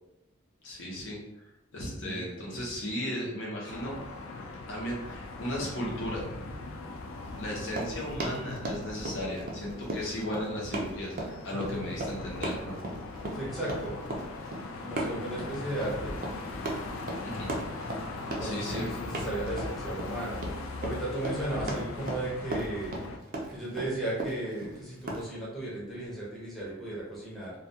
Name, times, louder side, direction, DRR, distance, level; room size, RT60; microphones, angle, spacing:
voice 1, 0.6-1.5 1.7-4.0 4.7-6.3 7.4-12.8 17.2-17.5 18.4-18.9, equal, 65° left, -4 dB, 0.7 m, -35 dB
sound 1, 3.7-23.2, left 2 dB, 80° left, 0.3 m, -40 dB
Run, 7.6-25.3, right 1 dB, 45° right, 0.4 m, -37 dB
voice 2, 13.3-13.9 14.8-16.1 18.3-20.4 20.8-22.9 23.5-27.5, right 1 dB, ahead, -8 dB, 0.7 m, -35 dB
2.3 x 2.2 x 2.7 m, 0.96 s
head